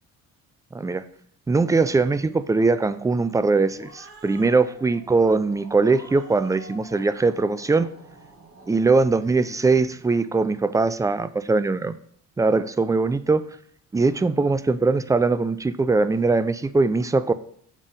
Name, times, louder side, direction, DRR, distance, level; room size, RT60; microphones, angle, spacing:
voice 1, 1.5-7.9 8.7-11.9 12.4-13.5 13.9-17.3, right 3 dB, 10° right, 13 dB, 0.3 m, -21 dB
Growling, 3.4-10.2, right 2 dB, 45° right, 2.8 m, -48 dB
7.4 x 3.5 x 5.3 m, 0.63 s
cardioid pair, 90°, 30 cm